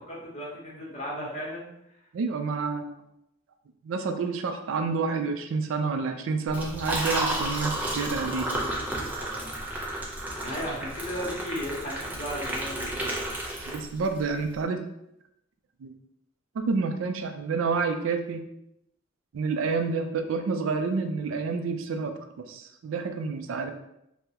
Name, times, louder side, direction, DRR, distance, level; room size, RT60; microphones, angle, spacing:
voice 1, 0.1-1.7 10.4-13.2, equal, 35° left, -4 dB, 0.9 m, -35 dB
voice 2, 2.1-2.9 3.8-8.5 13.7-14.8 15.8-15.9 16.5-18.4 19.3-23.7, right 4 dB, 75° right, 7 dB, 0.3 m, -29 dB
Liquid, 6.5-14.2, right 1 dB, 10° right, 0.5 m, -32 dB
3.5 x 2.1 x 2.8 m, 0.82 s
head